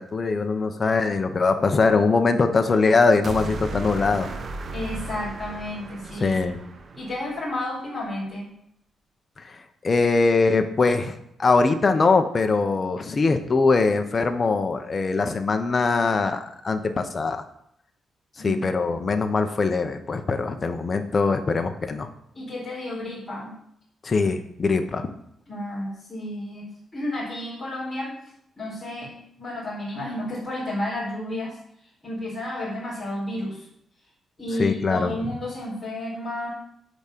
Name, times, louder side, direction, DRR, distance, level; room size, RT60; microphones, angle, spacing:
voice 1, 0.0-4.3 6.2-6.6 9.4-17.4 18.4-22.1 24.0-25.1 34.6-35.1, left 4 dB, 25° left, 6 dB, 0.7 m, -22 dB
sound 1, 3.2-7.5, right 2 dB, 40° right, 0.6 m, -35 dB
voice 2, 4.7-6.4 6.9-8.5 18.4-18.6 22.3-23.5 25.5-28.1 28.6-31.6 32.0-33.7 34.4-36.5, left 1 dB, 5° left, -11 dB, 4.1 m, -31 dB
9.9 x 3.6 x 6.8 m, 0.74 s
wide cardioid pair, 175°, 0 cm